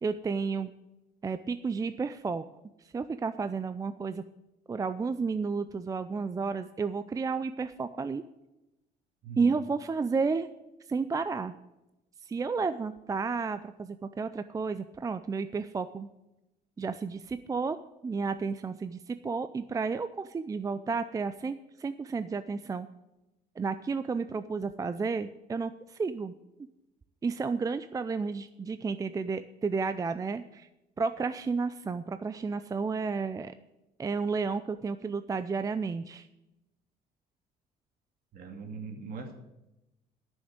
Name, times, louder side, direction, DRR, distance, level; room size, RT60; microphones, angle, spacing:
voice 1, 0.0-0.7 1.2-2.4 2.9-4.2 4.7-8.2 9.4-10.5 10.9-11.6 12.2-16.1 16.8-17.8 18.0-22.9 23.6-26.3 27.2-30.7 31.0-33.5 34.0-36.3, right 4 dB, 20° right, 11 dB, 0.4 m, -32 dB
voice 2, 9.2-9.6 38.3-39.3, right 5 dB, 60° right, 2 dB, 2.5 m, -41 dB
10.5 x 6.3 x 8.7 m, 0.94 s
cardioid pair, 110°, 17 cm